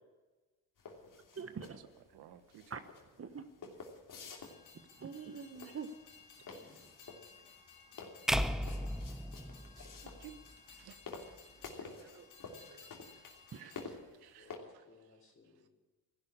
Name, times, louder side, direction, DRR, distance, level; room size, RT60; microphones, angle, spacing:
sound 1, 0.8-14.6, left 4 dB, 55° left, 3.1 m, -50 dB
voice 1, 1.3-1.8 2.7-2.9 3.2-3.5 5.0-5.9 11.6-12.3 12.7-12.9 13.5-13.7, right 6 dB, 35° right, 1.1 m, -45 dB
voice 2, 2.1-2.6 9.7-11.0 11.4-12.2 12.6-12.8 13.1-13.3 13.6-14.9, right 10 dB, 80° right, 1.1 m, -58 dB
Train, 4.1-13.9, left 6 dB, 90° left, 3.2 m, -59 dB
voice 3, 6.5-7.0 14.4-15.7, left 3 dB, 35° left, 4.1 m, -62 dB
sound 2, 8.3-10.5, equal, ahead, 0.8 m, -35 dB
14.5 x 11.5 x 8.6 m
supercardioid pair, 70°, 38 cm